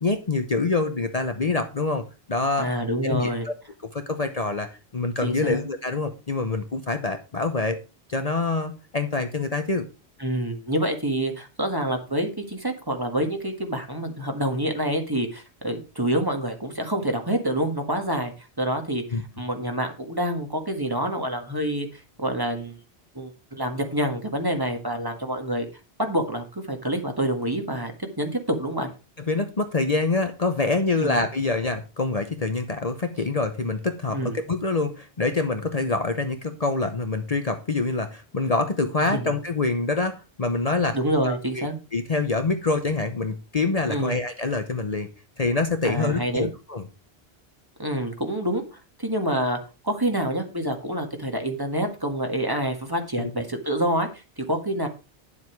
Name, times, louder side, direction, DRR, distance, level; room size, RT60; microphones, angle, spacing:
voice 1, 0.0-2.0 2.3-2.7 3.0-3.5 3.8-7.8 8.1-9.9 19.1-19.2 29.3-41.0 41.2-41.7 41.9-45.1 45.4-46.8 53.1-53.3, left 3 dB, 40° left, 7 dB, 1.0 m, -26 dB
voice 2, 2.6-3.5 5.2-5.6 10.2-18.3 18.6-22.8 23.1-25.7 26.0-27.9 28.2-28.9 31.0-31.2 34.1-34.4 39.0-39.3 40.9-41.8 43.9-44.2 45.8-46.5 47.8-54.9, right 1 dB, 20° right, 4 dB, 1.8 m, -27 dB
10.0 x 7.4 x 4.6 m, 0.30 s
omnidirectional pair, 1.1 m